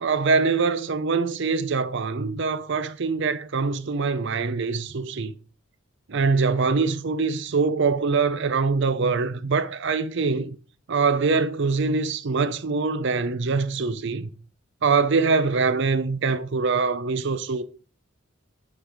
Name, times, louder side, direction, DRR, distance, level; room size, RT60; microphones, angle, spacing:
voice 1, 0.0-5.3 6.1-10.5 10.9-14.3 14.8-17.6, right 4 dB, 60° right, 0.6 m, -23 dB
7.1 x 5.5 x 4.8 m
head